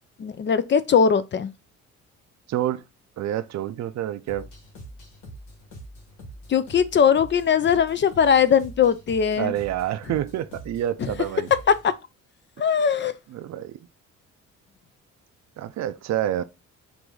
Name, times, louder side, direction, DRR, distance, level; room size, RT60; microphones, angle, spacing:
voice 1, 0.2-1.5 6.5-9.5 11.7-11.9 12.6-13.2, left 7 dB, 40° left, 0.5 m, -20 dB
voice 2, 2.5-2.8 3.2-4.5 9.4-11.5 13.3-13.7 15.6-16.4, right 12 dB, 65° right, 0.5 m, -28 dB
sound 1, 4.3-12.0, right 1 dB, 80° left, 1.8 m, -44 dB
4.7 x 2.7 x 3.8 m
cardioid pair, 90°, 30 cm